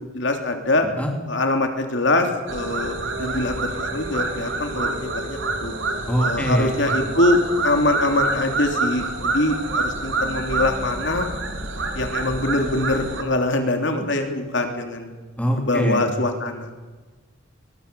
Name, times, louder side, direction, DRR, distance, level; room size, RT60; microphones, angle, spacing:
voice 1, 0.1-0.9 1.3-5.7 6.2-7.4 7.6-9.1 9.3-11.3 11.9-15.1 15.6-16.7, left 2 dB, 55° left, 4 dB, 3.2 m, -23 dB
sound 1, 2.5-13.2, right 3 dB, 60° right, 3.5 m, -27 dB
voice 2, 6.1-6.7 15.4-16.0, equal, 5° left, 2 dB, 3.0 m, -23 dB
22.5 x 22.0 x 7.0 m, 1.3 s
head